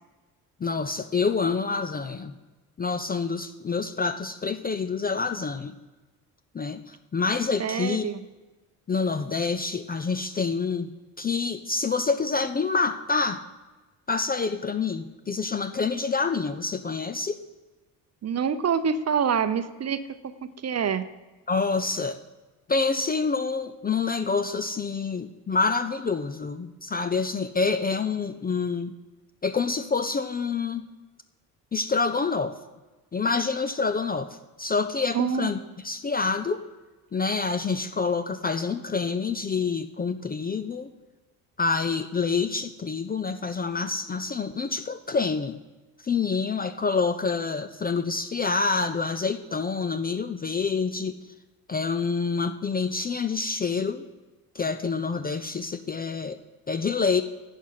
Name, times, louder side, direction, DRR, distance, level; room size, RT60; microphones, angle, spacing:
voice 1, 0.6-2.3 2.8-5.7 6.5-8.1 8.9-10.9 11.2-13.4 14.1-17.4 21.5-22.2 22.7-28.9 29.4-30.8 31.7-32.5 33.1-34.3 34.6-35.6 35.8-36.6 37.1-40.9 41.6-45.6 46.0-51.1 51.7-54.1 54.5-56.4 56.7-57.2, left 4 dB, 20° left, 9 dB, 0.5 m, -27 dB
voice 2, 7.6-8.2 18.2-20.0 20.6-21.0 35.1-35.5, right 7 dB, 35° right, 12 dB, 0.8 m, -26 dB
11.0 x 8.2 x 5.8 m, 1.2 s
hypercardioid pair, 50°, 47 cm